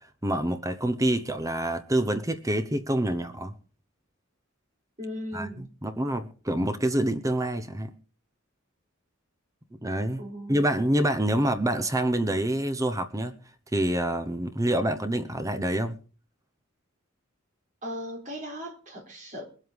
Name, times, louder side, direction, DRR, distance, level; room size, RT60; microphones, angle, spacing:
voice 1, 0.2-3.5 5.3-5.5 5.8-7.9 9.8-10.2 10.5-13.3 13.7-15.9, right 1 dB, 15° right, 0.9 m, -26 dB
voice 2, 5.0-5.7 10.2-10.7 17.8-19.5, equal, 35° right, 4.4 m, -37 dB
22.0 x 8.1 x 5.2 m
head